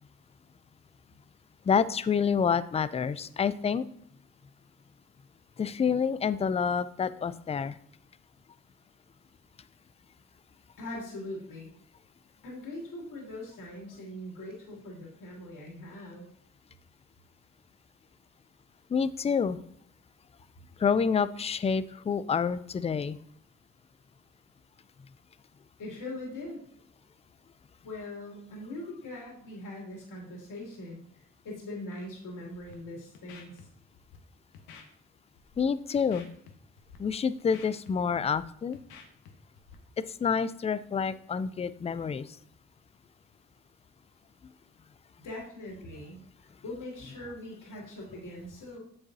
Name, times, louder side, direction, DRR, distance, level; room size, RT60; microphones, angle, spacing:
voice 1, 1.7-3.8 5.6-7.8 18.9-19.6 20.8-23.2 35.6-36.3 37.0-38.8 40.2-42.3, left 6 dB, 20° left, 15 dB, 0.4 m, -28 dB
voice 2, 10.8-11.7 12.4-16.3 25.8-26.6 27.8-33.5 45.2-48.8, left 1 dB, 55° left, -2 dB, 2.8 m, -41 dB
Scratching (performance technique), 32.5-32.7 33.1-33.6 33.9-34.2 34.5-34.8 35.3-35.6 35.9-36.5 36.8-37.0 37.3-38.4 38.7-39.3 39.6-39.7, left 7 dB, 75° left, 1.3 m, -50 dB
8.6 x 6.9 x 2.7 m, 0.66 s
hypercardioid pair, 55°, 37 cm